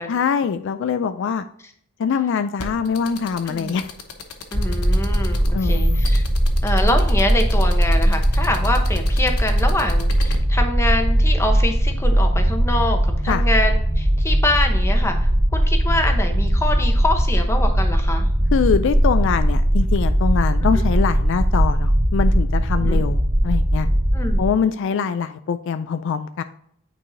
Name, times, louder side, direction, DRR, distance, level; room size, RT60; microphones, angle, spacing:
voice 1, 0.1-1.4 2.0-3.9 5.5-6.0 13.3-13.4 18.5-23.2 23.4-23.9 24.4-26.4, left 6 dB, 55° left, 10 dB, 0.3 m, -23 dB
sound 1, 2.6-10.4, left 5 dB, 85° left, 1.0 m, -35 dB
voice 2, 4.5-6.2 6.6-18.3 20.6-20.9 22.8-23.0 24.1-24.4, left 1 dB, 10° left, 5 dB, 0.8 m, -25 dB
sound 2, 4.5-24.5, equal, 40° right, 2.1 m, -19 dB
8.7 x 4.7 x 2.6 m, 0.68 s
head